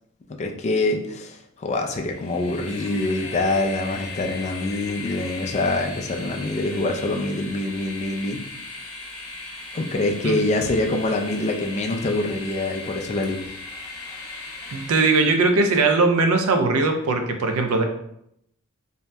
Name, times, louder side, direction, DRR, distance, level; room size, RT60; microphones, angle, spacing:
voice 1, 0.4-8.4 9.7-13.5, left 2 dB, 30° left, 3 dB, 0.3 m, -25 dB
Train, 2.0-15.5, left 3 dB, 70° left, 0.7 m, -38 dB
voice 2, 14.7-17.8, right 3 dB, 70° right, 5 dB, 0.4 m, -20 dB
2.7 x 2.1 x 3.3 m, 0.75 s
head